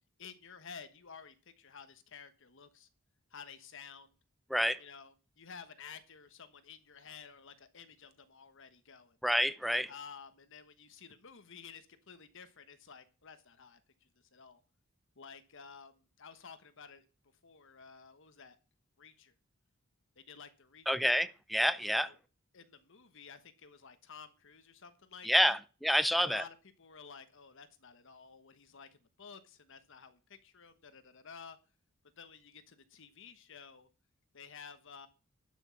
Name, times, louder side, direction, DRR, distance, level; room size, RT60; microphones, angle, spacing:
voice 1, 0.2-2.9 3.3-4.1 4.8-9.2 9.9-14.6 15.2-17.1 17.4-18.6 19.0-19.3 20.2-20.9 21.1-21.2 21.9-22.2 22.5-25.6 26.2-31.6 32.2-33.9 34.3-35.1, left 6 dB, 65° left, 1.2 m, -52 dB
voice 2, 9.2-9.9 20.9-22.1 25.2-26.4, equal, ahead, 0.6 m, -28 dB
12.0 x 6.3 x 5.8 m
head